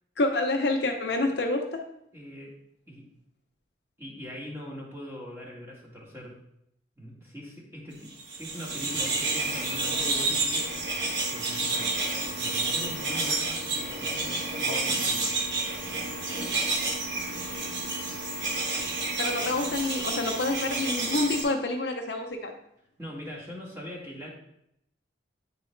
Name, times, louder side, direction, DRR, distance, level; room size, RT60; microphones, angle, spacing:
voice 1, 0.2-1.8 19.2-22.5, left 2 dB, 60° left, 3 dB, 0.7 m, -27 dB
voice 2, 2.1-2.6 2.9-3.1 4.0-6.4 7.0-11.0 11.3-12.1 12.3-15.4 23.0-24.3, equal, 15° right, -4 dB, 1.6 m, -42 dB
sound 1, 8.2-21.4, right 3 dB, 65° right, 1.4 m, -30 dB
8.8 x 3.8 x 3.2 m, 0.76 s
head